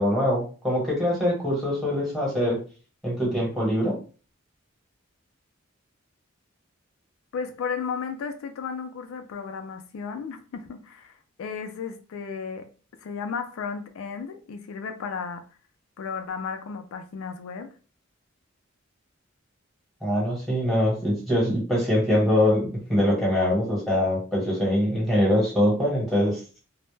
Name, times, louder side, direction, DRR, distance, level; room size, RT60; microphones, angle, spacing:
voice 1, 0.0-2.6 3.0-4.0 20.0-26.6, left 1 dB, ahead, 1.1 m, -23 dB
voice 2, 7.3-11.1 11.4-12.7 13.0-15.4 16.0-17.7, left 6 dB, 80° left, 0.3 m, -34 dB
2.1 x 2.0 x 3.1 m
head